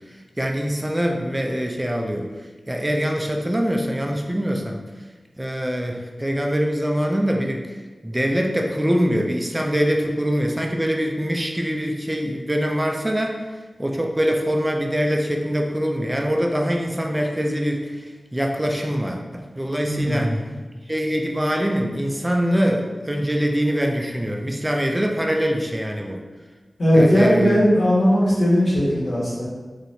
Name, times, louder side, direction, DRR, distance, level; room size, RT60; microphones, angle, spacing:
voice 1, 0.4-2.3 2.7-4.8 5.4-7.7 8.0-13.4 13.8-20.4 20.9-26.2 26.9-27.6, equal, 20° right, 1 dB, 0.3 m, -23 dB
voice 2, 19.8-20.6 26.8-29.4, equal, 70° left, -9 dB, 1.4 m, -18 dB
3.3 x 2.7 x 2.7 m, 1.3 s
wide cardioid pair, 65°, 0 cm